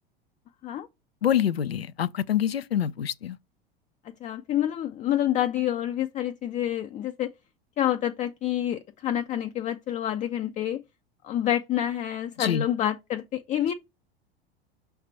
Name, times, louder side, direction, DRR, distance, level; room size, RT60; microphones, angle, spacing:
voice 1, 1.2-3.4 12.4-12.6, left 10 dB, 80° left, 0.5 m, -26 dB
voice 2, 4.0-7.3 7.8-10.8 11.2-13.7, left 11 dB, 25° left, 0.5 m, -28 dB
6.4 x 3.4 x 5.4 m
figure-of-eight pair, 80°, 30 cm